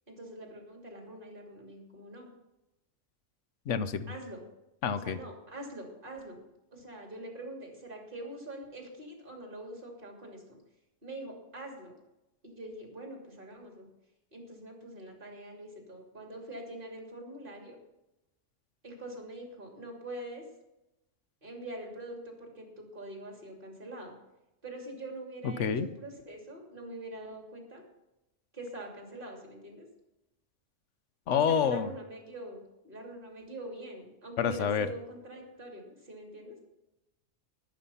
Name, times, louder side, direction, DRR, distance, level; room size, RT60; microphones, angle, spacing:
voice 1, 0.1-2.3 4.1-4.4 4.9-6.4 6.7-10.6 11.0-11.9 12.4-13.9 14.3-17.8 18.8-20.4 21.4-24.1 24.6-27.8 28.5-29.9 31.3-36.6, right 1 dB, 45° right, 1 dB, 3.1 m, -44 dB
voice 2, 3.7-4.1 4.8-5.2 25.4-25.9 31.3-31.9 34.4-34.9, left 7 dB, 70° left, 12 dB, 1.1 m, -28 dB
14.0 x 10.5 x 5.6 m, 0.94 s
omnidirectional pair, 1.3 m